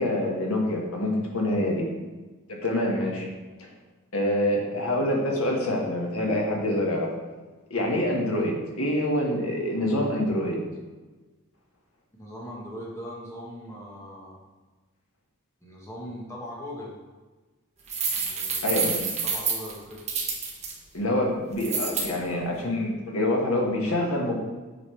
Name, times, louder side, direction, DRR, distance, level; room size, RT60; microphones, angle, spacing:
voice 1, 0.0-1.9 2.5-3.2 4.1-7.1 7.7-10.6 18.6-19.0 20.9-24.4, left 1 dB, 80° left, 0 dB, 1.4 m, -26 dB
voice 2, 12.1-14.4 15.6-17.0 18.1-18.8 19.2-20.0, equal, 15° left, -4 dB, 1.2 m, -40 dB
sound 1, 17.9-20.7 21.6-22.1, right 5 dB, 30° right, 1.3 m, -28 dB
8.2 x 5.3 x 3.2 m, 1.3 s
head